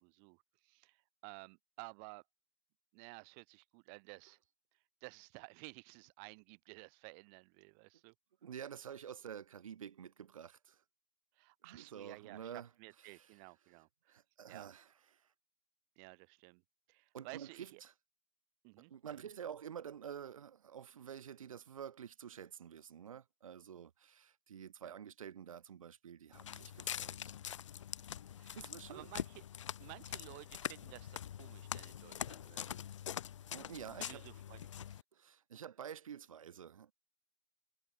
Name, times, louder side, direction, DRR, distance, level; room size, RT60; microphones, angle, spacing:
voice 1, 0.0-2.2 2.9-4.4 5.0-8.1 11.3-14.2 14.5-14.7 16.0-16.6 16.9-17.8 18.6-18.9 24.8-24.9 28.4-28.6 28.9-29.4 29.8-32.8 34.0-35.0, right 40 dB or more, 25° right, 1.5 m, -54 dB
voice 2, 8.4-10.8 11.6-12.7 13.1-13.3 14.1-14.9 17.1-17.9 18.8-27.2 28.5-29.1 33.5-34.2 35.1-36.9, right 8 dB, 65° right, 1.5 m, -49 dB
Walk footsteps, 26.3-35.0, left 10 dB, 55° left, 0.7 m, -44 dB
hypercardioid pair, 160°, 19 cm